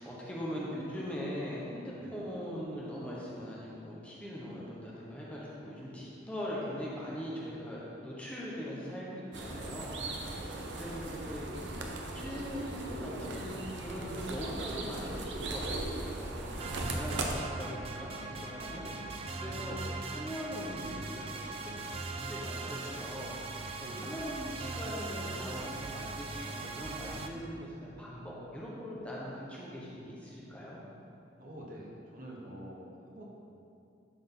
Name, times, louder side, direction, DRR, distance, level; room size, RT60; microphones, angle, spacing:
voice 1, 0.0-11.8 12.1-15.8 16.1-23.7 23.9-30.8, equal, 5° left, -6 dB, 1.0 m, -41 dB
voice 2, 2.0-2.3 10.3-10.8 18.7-19.1 19.5-19.8 23.8-24.3 31.4-33.2, right 1 dB, 50° right, -3 dB, 1.1 m, -48 dB
sound 1, 9.3-17.3, right 2 dB, 80° right, 0.7 m, -38 dB
sound 2, 16.6-27.3, right 3 dB, 30° right, 0.4 m, -40 dB
11.5 x 3.9 x 3.8 m, 2.6 s
head